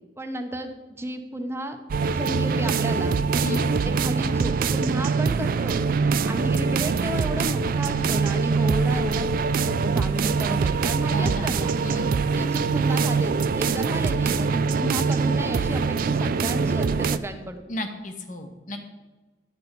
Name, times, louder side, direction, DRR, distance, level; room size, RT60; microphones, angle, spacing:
voice 1, 0.2-1.8 2.1-11.8 12.3-17.6, right 1 dB, 15° right, 7 dB, 0.7 m, -33 dB
sound 1, 1.9-17.2, right 5 dB, 50° right, 0.3 m, -23 dB
voice 2, 11.1-11.5 11.8-12.1 17.7-18.8, left 1 dB, 45° left, 5 dB, 1.1 m, -33 dB
11.0 x 4.3 x 6.6 m, 1.2 s
head